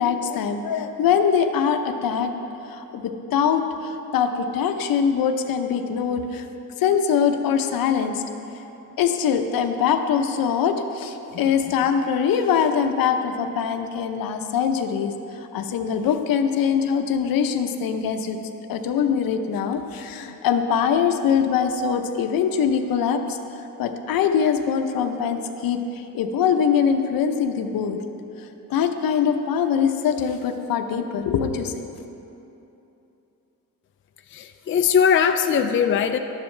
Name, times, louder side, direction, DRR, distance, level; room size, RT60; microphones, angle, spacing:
voice 1, 0.0-2.3 2.7-6.5 6.8-8.2 9.0-18.4 18.7-23.4 23.8-28.0 28.4-31.7, left 7 dB, 75° left, 7 dB, 0.8 m, -23 dB
voice 2, 34.3-36.2, left 7 dB, 35° left, 7 dB, 0.4 m, -20 dB
12.0 x 10.5 x 3.2 m, 2.9 s
cardioid pair, 105°, 35 cm